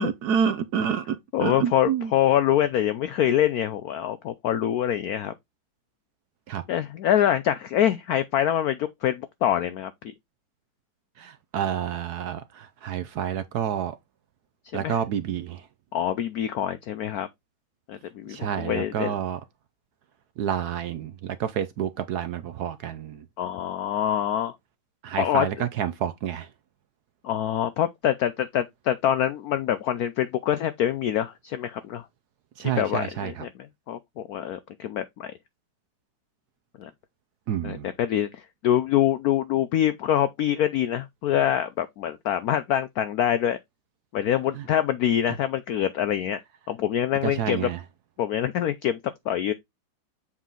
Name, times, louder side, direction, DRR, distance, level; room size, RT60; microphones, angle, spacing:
voice 1, 0.0-2.1 6.5-6.6 11.2-14.0 14.7-15.7 18.3-19.4 20.4-23.3 25.0-26.5 32.6-33.4 37.5-37.9 44.5-44.6 47.2-47.8, right 8 dB, 70° right, 1.0 m, -29 dB
voice 2, 1.3-5.3 6.7-10.1 14.8-14.9 15.9-17.3 17.9-19.1 23.4-24.5 25.2-25.5 27.2-32.0 32.6-33.5 33.9-35.3 36.8-36.9 37.6-43.6 44.1-46.4 46.7-47.7 48.2-49.0 49.3-49.5, left 10 dB, 80° left, 0.8 m, -25 dB
7.4 x 4.1 x 3.7 m
omnidirectional pair, 2.1 m